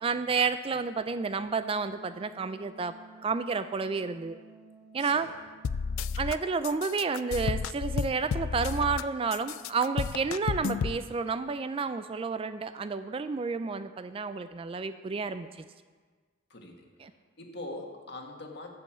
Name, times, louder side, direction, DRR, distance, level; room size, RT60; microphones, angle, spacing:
voice 1, 0.0-2.9 3.2-4.4 4.9-5.3 6.2-15.5 17.0-17.1, right 5 dB, 25° right, 11 dB, 0.3 m, -30 dB
Wind instrument woodwind instrument, 1.5-6.3, right 3 dB, 55° right, 4.1 m, -54 dB
voice 2, 5.0-5.4 16.5-18.7, left 2 dB, 55° left, 2 dB, 1.6 m, -43 dB
sound 1, 5.6-6.3 6.6-9.0 9.3-11.0, left 6 dB, 90° left, 0.4 m, -31 dB
13.5 x 5.4 x 7.9 m, 1.5 s
head